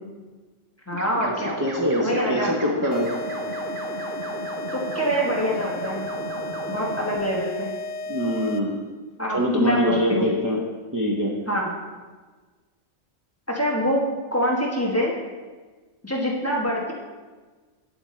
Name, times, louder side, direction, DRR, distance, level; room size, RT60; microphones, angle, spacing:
voice 1, 0.9-1.5 2.0-2.5 4.7-6.0 6.7-7.7 9.2-10.3 11.5-11.7 13.5-15.2 16.0-16.9, equal, 15° left, -3 dB, 1.1 m, -25 dB
sound 1, 0.9-7.2, right 3 dB, 50° right, 0.9 m, -35 dB
voice 2, 1.6-3.1 8.1-8.8 9.3-10.6 10.9-11.3, equal, 20° right, -2 dB, 0.6 m, -23 dB
sound 2, 2.9-8.9, left 2 dB, 80° left, 1.2 m, -33 dB
8.7 x 7.7 x 3.2 m, 1.3 s
omnidirectional pair, 1.3 m